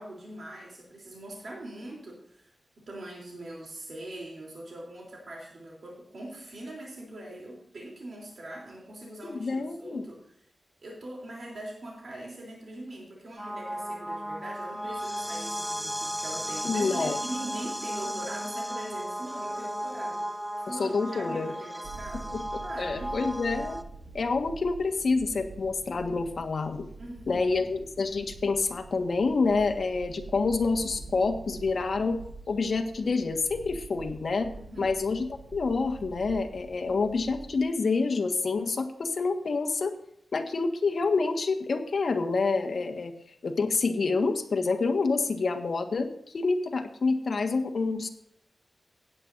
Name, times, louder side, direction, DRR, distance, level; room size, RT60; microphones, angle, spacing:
voice 1, 0.0-2.5 2.8-10.4 10.8-23.2 27.0-27.7 34.5-35.0, right 1 dB, 65° right, -3 dB, 3.5 m, -42 dB
voice 2, 9.3-10.0 16.6-17.2 20.7-21.5 22.3-22.4 22.8-23.8 24.1-26.8 27.3-32.2 32.5-34.5 34.8-39.9 40.3-43.1 43.4-48.1, left 4 dB, 65° left, 5 dB, 1.6 m, -27 dB
sound 1, 13.4-23.8, equal, ahead, 0.7 m, -35 dB
sound 2, 21.8-37.6, right 3 dB, 85° right, 4.1 m, -46 dB
16.5 x 10.0 x 2.7 m, 0.73 s
wide cardioid pair, 100°, 0 cm